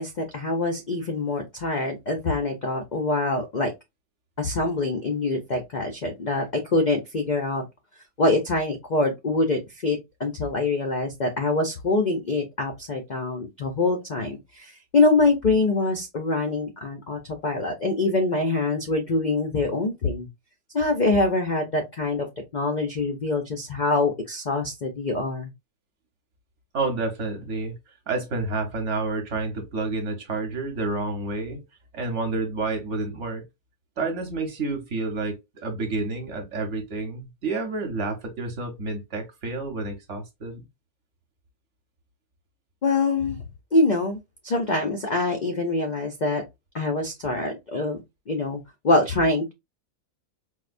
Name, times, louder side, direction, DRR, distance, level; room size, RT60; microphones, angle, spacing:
voice 1, 0.0-3.7 4.4-7.6 8.2-20.3 20.7-22.3 22.5-25.5 42.8-43.4 43.7-46.4 46.7-48.0 48.3-49.5, left 2 dB, 75° left, 0.4 m, -24 dB
voice 2, 26.7-27.7 28.1-31.6 31.9-33.4 34.0-40.6, right 3 dB, 55° right, 1.1 m, -29 dB
4.5 x 2.2 x 2.5 m
omnidirectional pair, 1.7 m